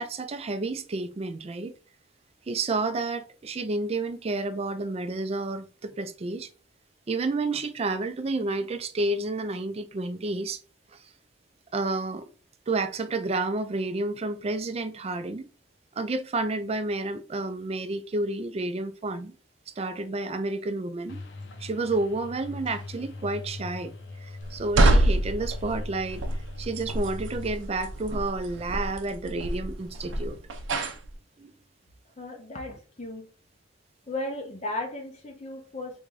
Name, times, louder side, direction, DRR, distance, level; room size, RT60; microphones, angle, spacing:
voice 1, 0.0-1.7 2.5-6.5 7.1-10.6 10.9-11.0 11.7-12.3 12.7-15.4 15.9-19.3 19.7-21.2 21.6-23.9 24.2-26.2 26.6-30.4 31.4-31.5, right 2 dB, 30° right, 0.4 m, -30 dB
sound 1, 21.1-27.5, left 3 dB, 70° left, 0.7 m, -42 dB
sound 2, 24.4-31.1, right 1 dB, 90° right, 0.6 m, -26 dB
voice 2, 32.2-33.3 34.1-36.0, left 2 dB, 35° left, 0.5 m, -35 dB
3.5 x 2.6 x 3.2 m
head